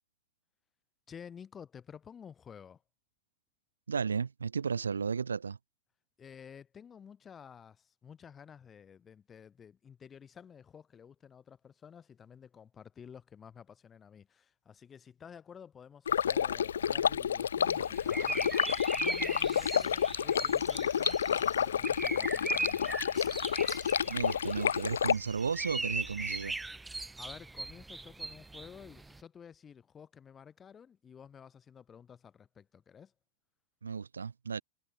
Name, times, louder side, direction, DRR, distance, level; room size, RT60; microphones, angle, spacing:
voice 1, 1.1-2.8 6.2-18.5 19.0-22.9 27.2-33.1, left 7 dB, 20° left, 7.5 m, -52 dB
voice 2, 3.9-5.6 24.1-26.6 33.8-34.6, right 5 dB, 75° right, 0.4 m, -34 dB
Stream, 16.1-25.1, left 8 dB, 65° left, 0.3 m, -30 dB
sound 1, 17.6-29.2, right 3 dB, 10° right, 0.8 m, -39 dB
figure-of-eight pair, 90°, 0 cm